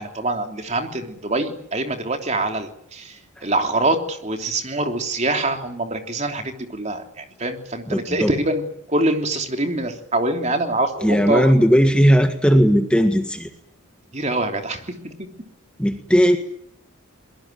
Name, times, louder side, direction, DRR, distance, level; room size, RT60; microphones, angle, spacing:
voice 1, 0.0-8.6 8.9-11.6 14.1-14.9, right 2 dB, 30° right, 5 dB, 3.2 m, -24 dB
voice 2, 7.9-8.3 11.0-13.5 15.8-16.4, equal, 5° left, 5 dB, 1.6 m, -17 dB
23.5 x 22.0 x 9.4 m, 0.69 s
head